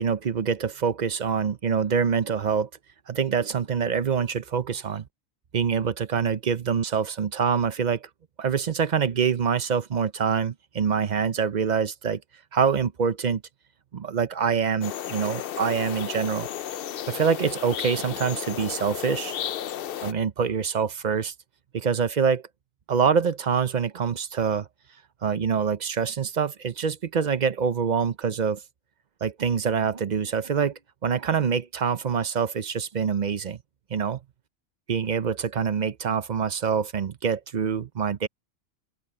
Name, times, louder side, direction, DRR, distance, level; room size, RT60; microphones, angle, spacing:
voice 1, 0.0-2.7 3.1-5.0 5.5-8.1 8.4-12.2 12.5-13.4 13.9-16.5 17.1-19.4 20.0-21.3 21.7-22.4 22.9-24.7 25.2-28.6 29.2-33.6 33.9-34.2 34.9-38.3, right 6 dB, 45° right, 0.7 m, -25 dB
sound 1, 14.8-20.1, left 10 dB, 60° left, 0.6 m, -33 dB
open air
omnidirectional pair, 1.4 m